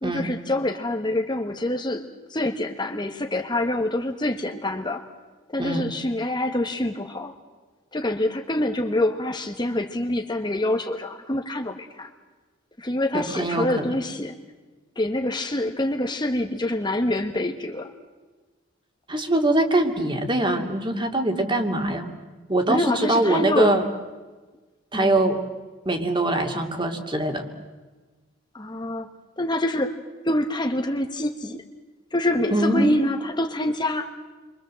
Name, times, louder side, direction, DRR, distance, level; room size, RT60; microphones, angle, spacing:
voice 1, 0.0-5.0 5.5-7.4 7.9-12.1 12.8-14.3 14.9-17.9 22.7-23.8 24.9-25.2 28.5-29.1 29.4-30.0 30.2-31.6 32.1-34.1, left 1 dB, 20° left, 4 dB, 1.4 m, -26 dB
voice 2, 5.6-5.9 13.1-13.7 19.1-22.1 22.5-23.8 24.9-25.4 25.9-27.5 32.5-32.9, right 1 dB, 25° right, 5 dB, 2.6 m, -23 dB
29.5 x 24.5 x 7.7 m, 1.3 s
head